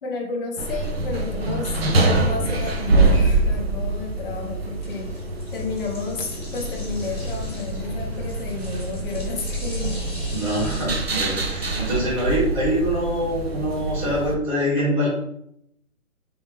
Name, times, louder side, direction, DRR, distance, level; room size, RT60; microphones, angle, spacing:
voice 1, 0.0-5.1 5.5-10.0, left 3 dB, 40° left, -1 dB, 0.6 m, -31 dB
sound 1, 0.6-14.4, right 2 dB, 45° right, 0.4 m, -25 dB
sound 2, 3.3-10.8, left 1 dB, ahead, 0.6 m, -42 dB
voice 2, 10.3-15.1, equal, 25° right, -8 dB, 1.5 m, -24 dB
3.4 x 3.4 x 3.0 m, 0.75 s
hypercardioid pair, 165°, 44 cm